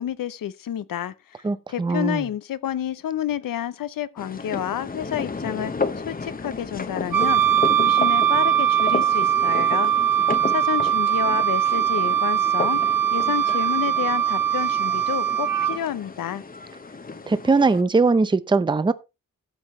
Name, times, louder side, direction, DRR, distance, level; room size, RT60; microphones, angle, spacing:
voice 1, 0.0-7.4 7.8-9.9 10.5-12.8 13.1-16.4, left 10 dB, 75° left, 0.8 m, -30 dB
voice 2, 1.4-2.2 17.3-18.9, right 3 dB, 15° right, 0.6 m, -20 dB
sound 1, 4.2-17.8, left 4 dB, 25° left, 1.0 m, -33 dB
Wind instrument woodwind instrument, 7.1-15.8, right 10 dB, 70° right, 1.1 m, -21 dB
13.0 x 7.8 x 3.2 m
cardioid pair, 100°, 34 cm